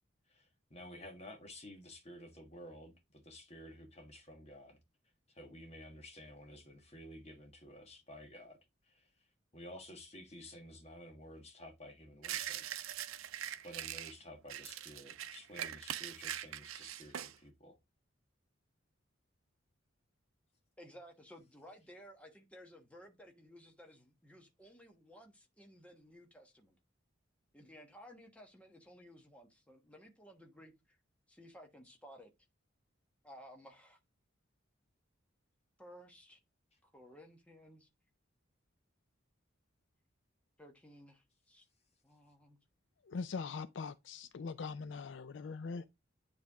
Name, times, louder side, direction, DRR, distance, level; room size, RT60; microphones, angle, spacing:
voice 1, 0.3-4.8 5.3-8.6 8.9-9.1 9.5-12.7 13.6-17.8, left 1 dB, 30° left, 1.4 m, -52 dB
sound 1, 12.2-14.1 14.5-17.3, right 11 dB, 90° right, 0.5 m, -42 dB
voice 2, 20.8-26.8 27.5-31.0 31.3-32.3 33.2-34.0 35.8-36.4 36.8-37.9 40.6-41.6 42.0-42.6, equal, 5° left, 1.1 m, -56 dB
voice 3, 43.0-45.9, left 4 dB, 65° left, 0.4 m, -42 dB
9.4 x 3.4 x 3.5 m
head